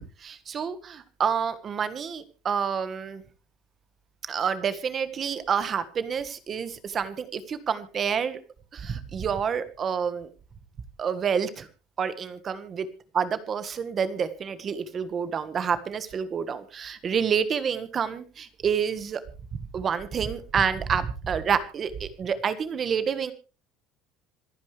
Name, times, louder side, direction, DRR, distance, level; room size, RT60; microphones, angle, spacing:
voice 1, 0.0-3.2 4.3-8.4 8.7-10.3 11.0-11.7 12.0-12.9 13.1-19.2 19.5-23.3, right 7 dB, 25° right, 13 dB, 1.4 m, -28 dB
26.5 x 9.6 x 3.3 m, 0.35 s
cardioid pair, 180°, 0 cm